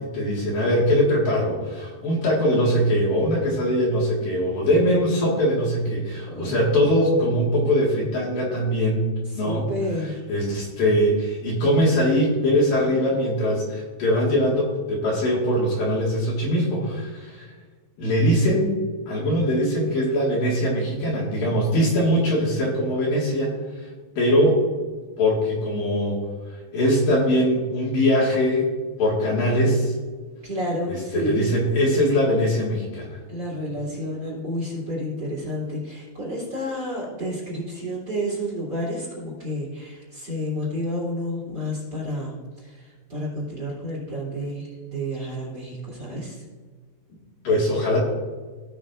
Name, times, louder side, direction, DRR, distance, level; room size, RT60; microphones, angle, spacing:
voice 1, 0.0-9.1 9.3-9.7 10.3-17.5 18.0-18.7 19.1-23.9 24.2-24.6 25.2-26.2 26.5-28.7 29.0-29.9 30.9-33.2 47.4-48.0, equal, 60° left, -5 dB, 3.3 m, -22 dB
voice 2, 6.3-6.8 9.2-10.2 30.4-31.5 33.3-46.4, equal, 25° right, -5 dB, 3.2 m, -30 dB
17.0 x 6.3 x 2.5 m, 1.5 s
omnidirectional pair, 4.9 m